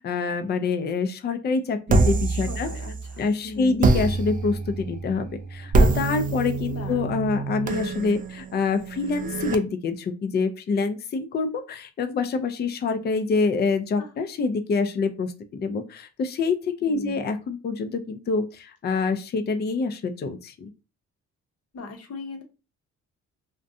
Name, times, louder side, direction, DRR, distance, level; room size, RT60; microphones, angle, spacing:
voice 1, 0.0-2.7 3.2-20.7, left 4 dB, 35° left, 8 dB, 0.4 m, -26 dB
sound 1, 1.9-3.2 3.8-9.5, right 3 dB, 30° right, 0.4 m, -25 dB
voice 2, 2.3-3.9 6.7-7.0 14.0-14.1 16.8-17.2 21.7-22.4, left 3 dB, 55° left, 4 dB, 0.8 m, -38 dB
2.5 x 2.2 x 2.6 m, 0.30 s
cardioid pair, 90°, 30 cm